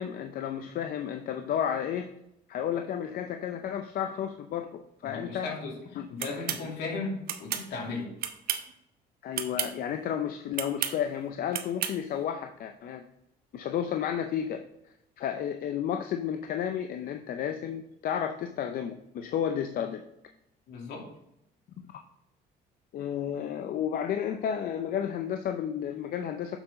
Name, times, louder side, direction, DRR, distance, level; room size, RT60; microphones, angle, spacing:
voice 1, 0.0-2.1 2.5-4.7 5.0-5.5 6.0-6.4 9.2-13.0 13.5-14.6 15.2-20.0 21.9-22.0 22.9-26.6, left 9 dB, 60° left, 6 dB, 0.6 m, -32 dB
voice 2, 5.0-5.7 6.1-8.1 20.7-21.1, left 3 dB, 75° left, -1 dB, 2.6 m, -36 dB
sound 1, 6.2-6.6 7.3-7.7 8.2-8.7 9.3-9.7 10.5-11.0 11.5-12.0, right 10 dB, 65° right, 0.8 m, -31 dB
7.2 x 5.6 x 3.9 m, 0.81 s
cardioid pair, 110°, 17 cm